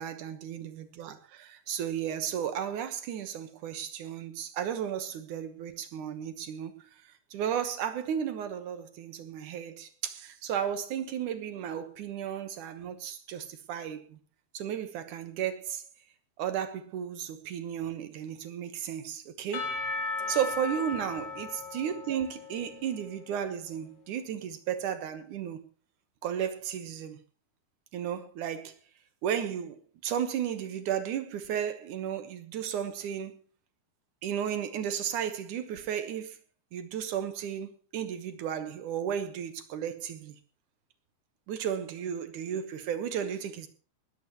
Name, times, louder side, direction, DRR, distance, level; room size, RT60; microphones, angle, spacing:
voice 1, 0.0-6.7 7.3-14.2 14.5-15.8 16.4-19.7 20.3-25.6 26.2-27.2 27.9-28.7 29.2-29.8 30.0-33.3 34.2-36.4 36.7-40.4 41.5-43.7, right 9 dB, 65° right, 2.2 m, -34 dB
Percussion / Church bell, 19.5-23.5, left 4 dB, 65° left, 4.2 m, -36 dB
20.0 x 13.5 x 3.0 m
omnidirectional pair, 4.9 m